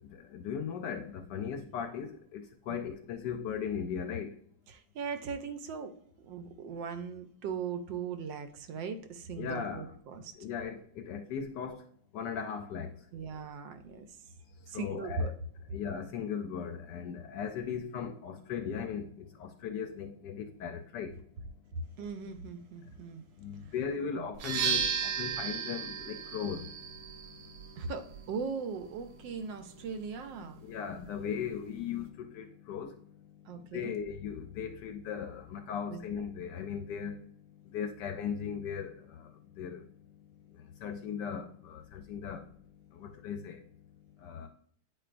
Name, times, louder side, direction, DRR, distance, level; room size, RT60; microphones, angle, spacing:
voice 1, 0.0-4.3 9.4-9.9 10.4-11.8 12.1-12.9 14.7-15.3 15.7-21.2 23.4-27.7 30.6-33.1 33.6-37.3 37.7-39.8 40.6-42.5 42.9-43.6 44.2-44.5, left 7 dB, 75° left, 1.0 m, -38 dB
voice 2, 4.7-10.3 13.1-14.2 14.7-15.3 21.7-23.2 23.6-23.7 24.2-24.3 27.8-30.6 33.4-34.0 35.9-36.2, right 5 dB, 75° right, 1.3 m, -39 dB
sound 1, 24.3-32.1, right 7 dB, 90° right, 1.6 m, -37 dB
8.9 x 4.5 x 2.5 m
omnidirectional pair, 2.2 m